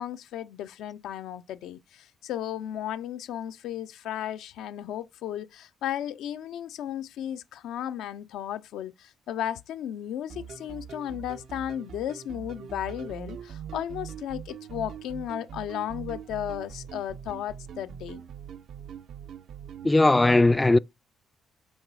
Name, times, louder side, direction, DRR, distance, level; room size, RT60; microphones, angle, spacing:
voice 1, 0.0-18.2, left 11 dB, 85° left, 0.5 m, -34 dB
sound 1, 10.3-19.9, right 8 dB, 70° right, 0.6 m, -42 dB
voice 2, 19.8-20.8, left 2 dB, 15° left, 0.3 m, -18 dB
6.2 x 4.0 x 4.7 m
cardioid pair, 90°, 0 cm